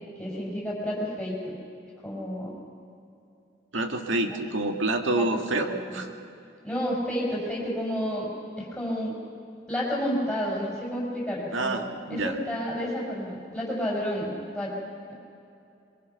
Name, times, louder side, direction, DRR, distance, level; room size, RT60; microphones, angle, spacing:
voice 1, 0.2-1.5 2.0-2.5 5.2-5.3 5.6-6.0 6.6-9.2 9.7-11.8 12.1-14.7, equal, 5° left, -5 dB, 5.9 m, -30 dB
voice 2, 3.7-6.1 11.5-12.4, right 2 dB, 85° right, 4 dB, 1.8 m, -27 dB
23.0 x 23.0 x 5.8 m, 2.6 s
head